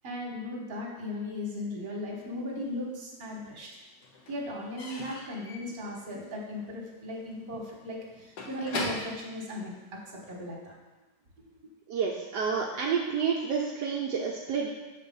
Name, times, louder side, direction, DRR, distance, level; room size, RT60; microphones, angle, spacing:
voice 1, 0.0-3.8 4.3-9.7 10.1-10.7, left 1 dB, 35° right, -2 dB, 1.3 m, -37 dB
Slam / Squeak / Wood, 2.5-3.4 3.6-10.4, left 2 dB, 70° left, 1.5 m, -41 dB
voice 2, 11.9-14.7, right 6 dB, 75° right, -1 dB, 1.1 m, -29 dB
6.7 x 3.3 x 5.3 m, 1.2 s
omnidirectional pair, 1.9 m